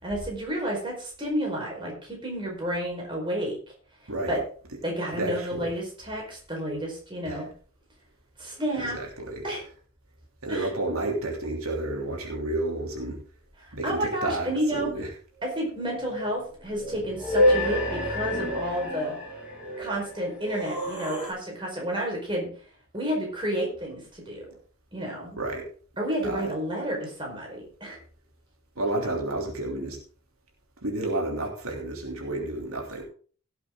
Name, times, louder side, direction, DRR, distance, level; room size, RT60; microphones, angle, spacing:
voice 1, 0.0-3.5 4.3-4.4 4.8-7.5 8.4-9.0 9.4-9.6 10.5-10.7 13.8-14.9 15.5-19.2 19.8-22.5 22.9-24.5 24.9-25.4 26.0-28.0, equal, 25° right, -1 dB, 4.8 m, -30 dB
voice 2, 4.1-4.4 5.1-5.7 7.2-7.4 8.8-9.5 10.4-13.2 13.7-15.1 25.4-25.7 26.2-26.5 28.8-30.0 30.8-33.0, right 2 dB, 85° right, 0 dB, 3.1 m, -31 dB
sound 1, 15.4-15.6 15.9-21.3, left 1 dB, 5° right, 5.8 m, -28 dB
17.0 x 8.2 x 3.8 m, 0.43 s
head